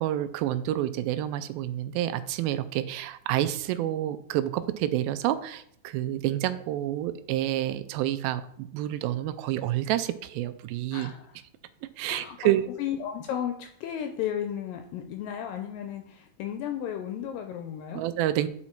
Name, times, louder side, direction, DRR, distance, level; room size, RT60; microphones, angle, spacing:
voice 1, 0.0-11.1 12.0-12.7 17.9-18.5, right 13 dB, 80° right, 12 dB, 2.2 m, -28 dB
voice 2, 10.9-11.3 12.1-12.5 12.8-18.0, left 9 dB, 80° left, 6 dB, 2.0 m, -34 dB
9.5 x 4.2 x 4.4 m, 0.66 s
omnidirectional pair, 4.6 m